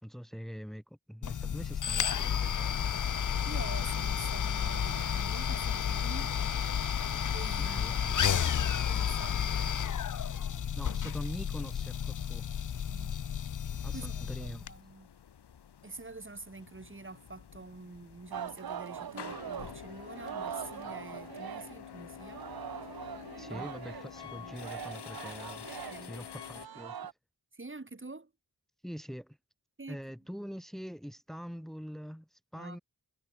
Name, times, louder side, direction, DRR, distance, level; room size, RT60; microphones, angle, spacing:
voice 1, 0.0-2.8 7.6-8.6 10.7-12.5 13.8-14.7 23.4-25.7 26.1-27.0 28.8-29.4 29.9-32.8, equal, ahead, 2.0 m, -43 dB
sound 1, 1.2-14.7, left 8 dB, 50° left, 0.5 m, -32 dB
voice 2, 3.5-6.3 7.3-8.0 8.6-9.8 12.9-13.1 13.9-15.1 15.8-22.4 23.5-23.7 24.3-24.6 25.9-26.1 27.5-28.3 29.8-30.0 32.5-32.8, right 3 dB, 30° right, 2.3 m, -46 dB
sound 2, 14.1-26.7, left 8 dB, 75° left, 0.9 m, -48 dB
Singing, 18.3-21.9 22.2-27.1, right 8 dB, 60° right, 0.7 m, -42 dB
wide cardioid pair, 70°, 41 cm